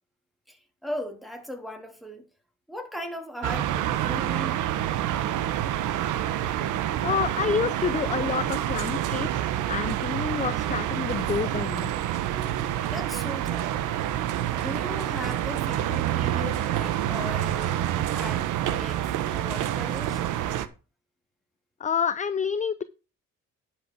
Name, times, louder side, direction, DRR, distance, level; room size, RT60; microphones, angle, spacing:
voice 1, 0.5-2.2 2.7-4.6 12.9-14.0 14.6-17.8 18.1-20.2, equal, ahead, 3.2 m, -38 dB
sound 1, 3.4-20.7, right 12 dB, 90° right, 1.1 m, -27 dB
voice 2, 7.0-11.9 21.8-22.8, left 6 dB, 25° left, 0.6 m, -28 dB
11.0 x 6.4 x 4.7 m
cardioid pair, 90°, 30 cm